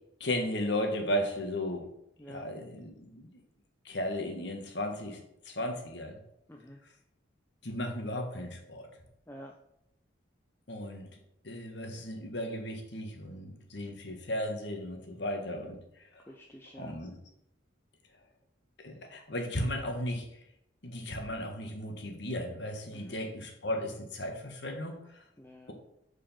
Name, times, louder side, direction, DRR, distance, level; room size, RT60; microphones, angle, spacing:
voice 1, 0.2-1.8 2.3-3.3 3.8-6.2 7.6-8.9 10.7-11.1 11.4-15.8 16.1-16.2 16.8-17.2 18.8-20.3 20.8-25.2, left 1 dB, 60° left, 4 dB, 1.5 m, -35 dB
voice 2, 2.2-2.5 6.5-6.8 9.3-9.5 16.3-17.0 22.9-23.2 25.4-25.7, equal, 10° left, 1 dB, 0.5 m, -49 dB
6.9 x 5.1 x 5.6 m, 0.79 s
head